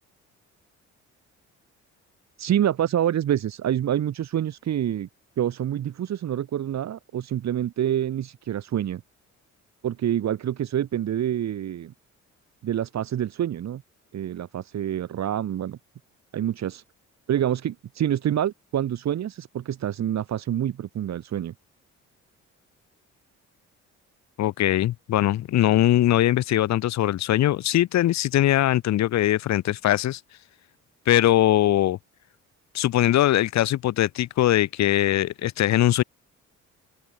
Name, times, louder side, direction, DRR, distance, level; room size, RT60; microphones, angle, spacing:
voice 1, 2.4-5.1 5.4-9.0 9.8-11.9 12.6-13.8 14.1-15.8 16.3-16.8 17.3-21.5, right 10 dB, 65° right, 2.1 m, -27 dB
voice 2, 24.4-30.2 31.1-32.0 32.7-36.0, left 13 dB, 65° left, 0.7 m, -21 dB
open air
cardioid pair, 90°, 30 cm